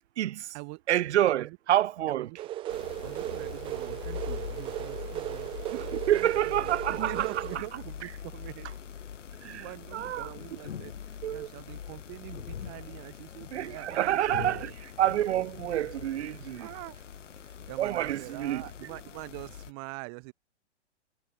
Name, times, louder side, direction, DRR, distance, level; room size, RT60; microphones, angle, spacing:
voice 1, 0.2-0.5 0.9-2.3 5.7-7.3 9.4-9.6 9.9-10.3 11.2-11.5 13.5-14.7 15.0-16.7 17.8-18.6, right 12 dB, 65° right, 0.5 m, -28 dB
voice 2, 1.3-1.6 2.1-2.4 3.0-8.7 9.4-14.7 16.6-17.1 17.7-20.3, right 39 dB, 40° right, 3.4 m, -44 dB
sound 1, 2.4-7.6, right 14 dB, 15° right, 0.5 m, -36 dB
sound 2, 2.7-19.7, left 8 dB, 80° left, 1.0 m, -42 dB
figure-of-eight pair, 115°, 36 cm